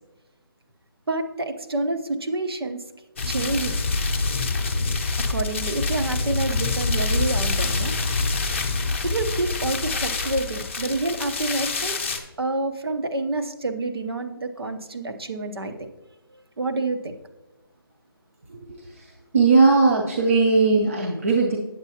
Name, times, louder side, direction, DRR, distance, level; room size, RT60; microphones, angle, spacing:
voice 1, 1.1-2.8 3.2-3.8 5.3-7.9 9.0-12.1 12.4-15.9 16.6-17.1, right 2 dB, 80° right, 6 dB, 0.9 m, -28 dB
sound 1, 3.2-12.2, left 3 dB, 30° left, 0.7 m, -26 dB
voice 2, 19.3-21.6, right 4 dB, 35° right, 0 dB, 0.6 m, -18 dB
8.1 x 7.8 x 2.8 m, 1.1 s
hypercardioid pair, 170°, 13 cm